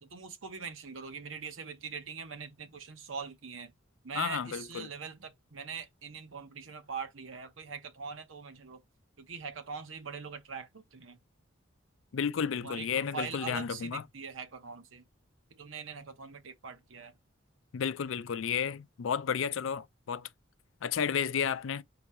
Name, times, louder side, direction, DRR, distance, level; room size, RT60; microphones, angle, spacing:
voice 1, 0.0-3.7 4.0-8.8 9.2-11.2 12.6-15.1 15.5-17.2, right 5 dB, 75° right, 1.0 m, -42 dB
voice 2, 4.1-4.9 12.1-14.0 17.7-20.3 20.8-21.8, left 7 dB, 75° left, 0.4 m, -32 dB
4.0 x 2.7 x 4.7 m
head